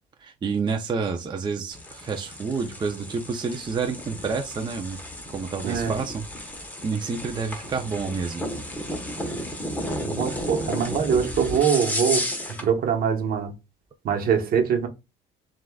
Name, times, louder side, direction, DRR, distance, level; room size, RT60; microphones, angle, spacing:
voice 1, 0.2-5.0 5.3-6.3 6.8-8.4, right 5 dB, 25° right, 0.6 m, -29 dB
sound 1, 1.7-12.7, equal, 10° left, 1.1 m, -33 dB
voice 2, 5.6-5.9 9.9-12.3 12.6-13.5 14.0-14.9, right 7 dB, 60° right, 1.1 m, -23 dB
7.4 x 2.5 x 2.3 m
cardioid pair, 110°, 17 cm